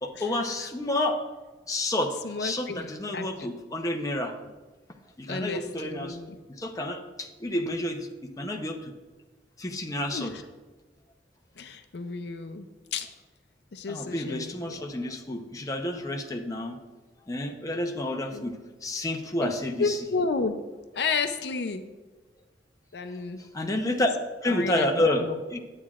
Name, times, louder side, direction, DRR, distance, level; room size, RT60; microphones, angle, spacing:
voice 1, 0.0-1.2 1.7-4.3 5.3-6.2 6.6-8.0 8.4-8.8 9.6-10.3 13.9-16.7 17.3-18.5 18.8-20.0 23.5-24.1 24.4-25.6, left 1 dB, 20° left, 2 dB, 0.7 m, -29 dB
voice 2, 2.2-3.5 4.4-4.5 5.3-6.4 10.1-10.4 11.6-13.1 13.7-14.8 16.0-16.3 18.3-18.5 19.4-19.5 19.8-20.6 20.9-21.8 22.9-23.4 24.5-25.4, left 4 dB, 70° left, 8 dB, 0.5 m, -32 dB
11.0 x 8.5 x 2.4 m, 1.2 s
head